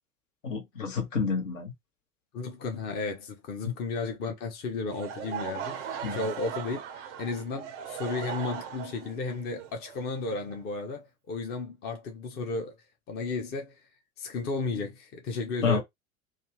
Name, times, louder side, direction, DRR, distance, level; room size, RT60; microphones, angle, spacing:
voice 1, 0.4-1.7 3.6-3.7 6.0-6.2 15.6-15.8, left 5 dB, 65° left, 1.1 m, -29 dB
voice 2, 2.3-12.7 13.1-13.8 14.2-15.8, left 3 dB, 25° left, 0.6 m, -34 dB
Laughter / Crowd, 4.9-10.8, right 8 dB, 25° right, 0.4 m, -38 dB
2.6 x 2.4 x 3.0 m
figure-of-eight pair, 85°, 42 cm